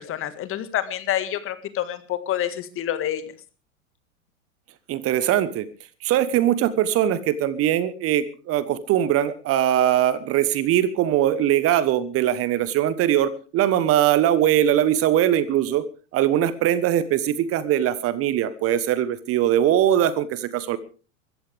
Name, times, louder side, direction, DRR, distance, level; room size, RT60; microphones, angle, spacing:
voice 1, 0.0-3.2, left 11 dB, 30° left, 12 dB, 1.8 m, -27 dB
voice 2, 4.9-5.7 6.0-15.8 16.1-20.8, right 11 dB, 35° right, 16 dB, 1.2 m, -21 dB
23.5 x 14.5 x 3.5 m, 0.36 s
figure-of-eight pair, 95°, 42 cm